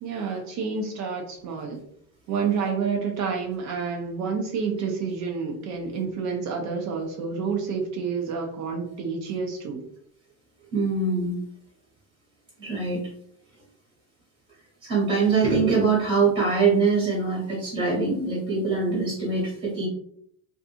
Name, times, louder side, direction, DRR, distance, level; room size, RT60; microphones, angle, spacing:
voice 1, 0.0-1.8 2.3-9.8, right 5 dB, 45° right, 1 dB, 0.5 m, -29 dB
voice 2, 10.7-11.3 12.6-13.0 14.8-19.9, right 4 dB, 25° right, -6 dB, 1.1 m, -23 dB
2.6 x 2.5 x 2.5 m, 0.66 s
cardioid pair, 155°, 39 cm